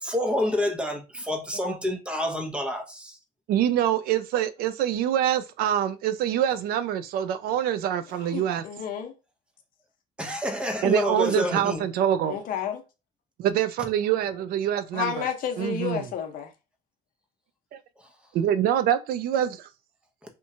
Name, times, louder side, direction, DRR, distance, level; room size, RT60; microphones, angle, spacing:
voice 1, 0.0-3.2 10.2-11.8 18.0-18.1, left 1 dB, 5° right, 0.6 m, -28 dB
voice 2, 3.5-8.7 10.8-12.4 13.4-15.3 15.6-16.0 17.7-17.8 18.3-19.7, right 10 dB, 70° right, 0.4 m, -25 dB
voice 3, 8.2-9.1 12.3-12.8 14.9-16.5, left 8 dB, 60° left, 0.7 m, -31 dB
2.9 x 2.1 x 2.7 m
cardioid pair, 120°, 16 cm